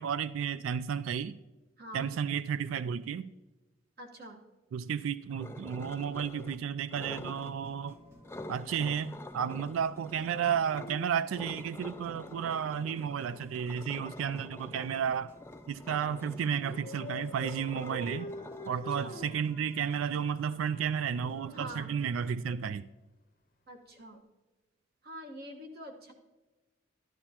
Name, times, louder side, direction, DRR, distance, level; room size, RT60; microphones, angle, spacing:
voice 1, 0.0-1.4 1.9-3.3 4.7-8.0 8.5-15.3 15.7-18.3 18.7-22.9, right 7 dB, 90° right, 0.3 m, -32 dB
voice 2, 1.8-2.1 4.0-4.4 18.7-19.2 21.5-21.9 23.7-24.2 25.0-26.1, right 1 dB, 50° right, 1.3 m, -45 dB
sound 1, 5.4-6.6 6.9-7.5 8.2-10.9 11.3-19.4, left 2 dB, 15° left, 0.3 m, -47 dB
Dog, 5.7-7.6 10.1-12.5 13.7-15.4 16.5-20.1 21.1-22.7 24.0-24.2, left 2 dB, 45° left, 0.6 m, -48 dB
sound 2, 7.1-22.3, equal, 15° right, 1.2 m, -55 dB
12.0 x 12.0 x 2.9 m
head